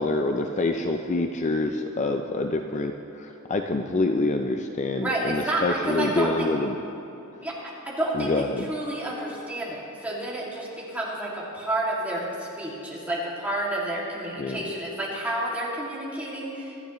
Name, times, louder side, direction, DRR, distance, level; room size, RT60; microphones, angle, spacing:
voice 1, 0.0-6.7 8.1-8.7 14.4-14.6, left 2 dB, 35° left, 5 dB, 0.4 m, -26 dB
voice 2, 5.0-6.5 7.4-16.7, right 1 dB, 5° right, -6 dB, 2.3 m, -30 dB
25.0 x 9.0 x 3.1 m, 2.8 s
head